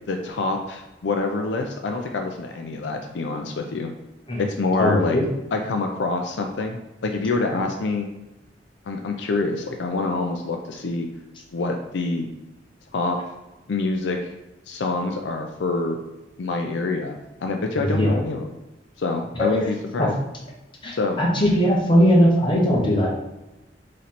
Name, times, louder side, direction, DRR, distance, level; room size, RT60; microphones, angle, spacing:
voice 1, 0.1-3.9 4.4-5.2 5.5-8.1 8.9-11.1 11.5-12.3 12.9-13.2 13.7-14.3 14.7-16.0 16.4-17.1 17.4-18.5 19.0-20.1 20.9-21.2, left 3 dB, 75° left, 3 dB, 0.5 m, -26 dB
voice 2, 4.8-5.3 17.8-18.2 19.3-19.7 20.0-20.1 20.8-23.1, equal, 30° left, -2 dB, 1.0 m, -19 dB
4.0 x 3.1 x 4.2 m, 0.98 s
head